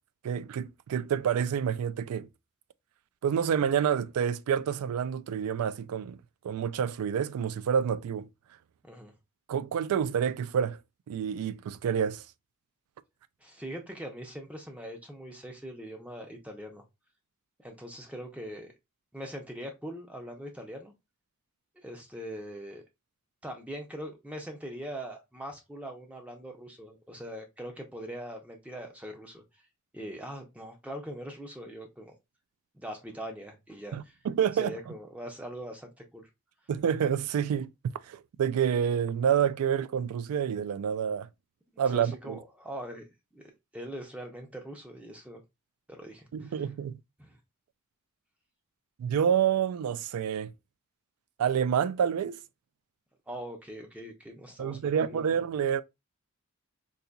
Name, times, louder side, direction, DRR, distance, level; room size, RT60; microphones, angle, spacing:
voice 1, 0.2-2.3 3.2-6.2 6.4-8.3 9.5-10.8 11.1-12.2 33.9-34.7 36.7-37.7 38.1-41.3 41.8-42.4 46.3-47.0 49.0-50.5 51.4-52.4 54.6-55.8, right 8 dB, 90° right, 0.3 m, -28 dB
voice 2, 13.4-16.8 17.6-18.7 19.1-20.9 21.8-22.8 23.4-29.4 29.9-32.1 32.7-34.1 34.5-36.3 41.9-43.1 43.3-45.4 45.9-46.7 47.2-47.4 53.3-55.4, equal, 5° right, 0.5 m, -42 dB
3.9 x 2.8 x 2.2 m
head